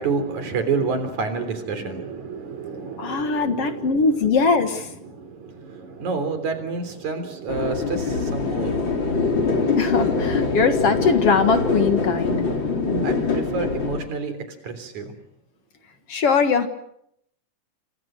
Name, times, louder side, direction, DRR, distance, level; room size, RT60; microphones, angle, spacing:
voice 1, 0.0-4.0 5.1-8.8 13.0-14.3 14.6-15.1, right 4 dB, 70° right, 10 dB, 4.8 m, -29 dB
voice 2, 3.0-4.9 9.8-12.4 16.1-16.7, left 5 dB, 55° left, 8 dB, 2.4 m, -21 dB
sound 1, 7.5-14.1, left 4 dB, 40° left, 3.8 m, -23 dB
29.5 x 26.0 x 6.3 m, 0.74 s
omnidirectional pair, 3.5 m